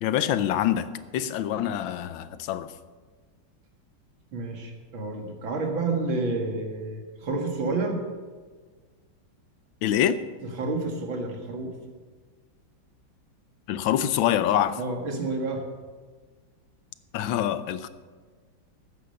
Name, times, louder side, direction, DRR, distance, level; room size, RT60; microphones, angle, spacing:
voice 1, 0.0-2.7 9.8-10.2 13.7-14.8 17.1-17.9, left 10 dB, 80° left, 13 dB, 1.5 m, -25 dB
voice 2, 4.3-8.0 10.4-11.8 14.8-15.6, right 3 dB, 85° right, 3 dB, 2.6 m, -29 dB
14.0 x 10.0 x 6.6 m, 1.5 s
omnidirectional pair, 2.1 m